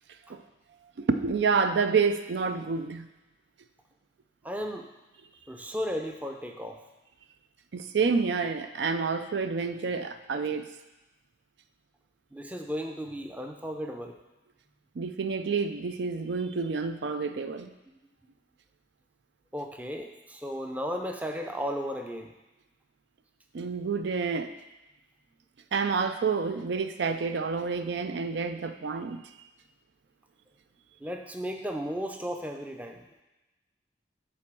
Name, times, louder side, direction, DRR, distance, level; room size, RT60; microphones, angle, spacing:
voice 1, 1.0-3.1 7.7-10.7 15.0-17.8 23.5-24.5 25.7-29.3, right 5 dB, 70° right, 9 dB, 0.4 m, -28 dB
voice 2, 4.4-4.9 5.5-6.8 12.3-14.2 19.5-22.3 31.0-33.0, equal, 10° right, 4 dB, 0.5 m, -35 dB
7.7 x 4.3 x 6.0 m, 1.0 s
head